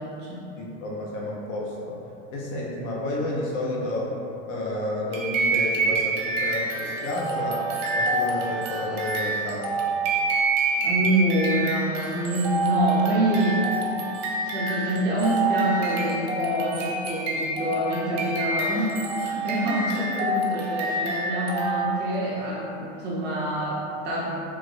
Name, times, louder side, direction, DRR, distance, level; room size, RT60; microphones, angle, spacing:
voice 1, 0.0-0.4 10.8-14.0 14.4-24.3, right 1 dB, 25° right, -7 dB, 0.6 m, -26 dB
voice 2, 0.6-2.0 2.3-4.1 4.5-7.7 7.9-9.7, left 1 dB, 45° left, -4 dB, 0.5 m, -30 dB
sound 1, 5.1-22.2, right 2 dB, 70° right, 0.7 m, -27 dB
3.0 x 2.2 x 3.2 m, 2.8 s
supercardioid pair, 135°, 38 cm